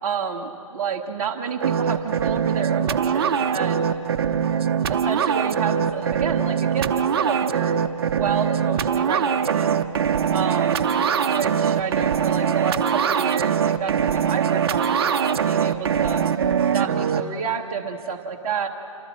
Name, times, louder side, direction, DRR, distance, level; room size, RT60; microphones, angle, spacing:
voice 1, 0.0-3.9 4.6-9.8 10.3-11.0 11.2-16.2 16.7-18.7, right 6 dB, 30° right, -2 dB, 1.1 m, -29 dB
sound 1, 1.6-17.2, right 7 dB, 45° right, 0.8 m, -22 dB
27.5 x 26.5 x 4.3 m, 2.9 s
hypercardioid pair, 155°, 18 cm